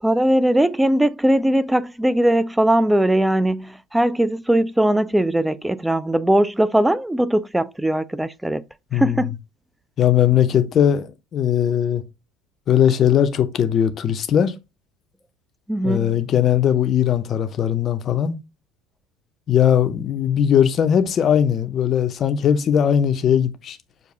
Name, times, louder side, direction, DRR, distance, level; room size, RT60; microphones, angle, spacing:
voice 1, 0.0-8.6 8.9-9.4 15.7-16.2, right 1 dB, 5° right, 0.3 m, -19 dB
voice 2, 8.9-9.3 10.0-12.0 12.7-14.5 15.8-18.4 19.5-23.8, left 9 dB, 40° left, 0.5 m, -19 dB
6.3 x 2.5 x 2.6 m
figure-of-eight pair, 65°, 0 cm